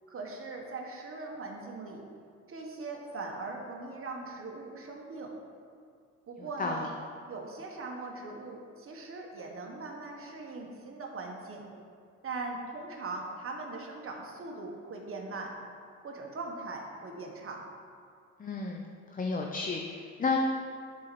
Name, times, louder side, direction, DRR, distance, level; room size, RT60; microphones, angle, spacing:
voice 1, 0.1-2.1 2.5-5.3 6.3-6.9 7.3-11.7 12.2-15.5 16.0-17.6, right 3 dB, 45° right, 0 dB, 1.6 m, -40 dB
voice 2, 18.4-18.9 19.1-20.4, left 4 dB, 25° left, 1 dB, 0.7 m, -32 dB
11.5 x 4.7 x 4.3 m, 2.2 s
cardioid pair, 90°, 30 cm